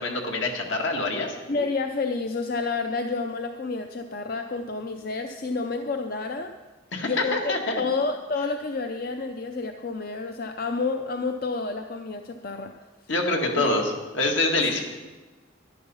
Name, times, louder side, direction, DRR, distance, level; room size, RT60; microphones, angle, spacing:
voice 1, 0.0-1.4 6.9-7.8 13.1-14.8, left 2 dB, 75° left, 2 dB, 1.9 m, -25 dB
voice 2, 1.5-6.5 7.0-12.7 13.6-13.7, left 4 dB, 45° left, 6 dB, 0.5 m, -29 dB
11.0 x 11.0 x 5.6 m, 1.2 s
head